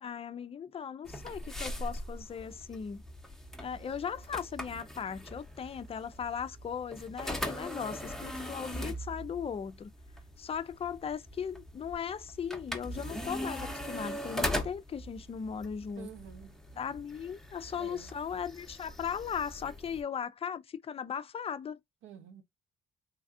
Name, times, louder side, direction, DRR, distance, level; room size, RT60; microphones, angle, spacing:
voice 1, 0.0-3.0 3.6-9.9 10.4-16.1 16.8-21.8, left 7 dB, 30° left, 0.4 m, -38 dB
sound 1, 1.0-20.0, equal, ahead, 0.8 m, -41 dB
voice 2, 16.0-16.6 17.7-18.2 22.0-22.4, right 8 dB, 80° right, 0.6 m, -49 dB
3.4 x 2.3 x 2.4 m
cardioid pair, 90°, 20 cm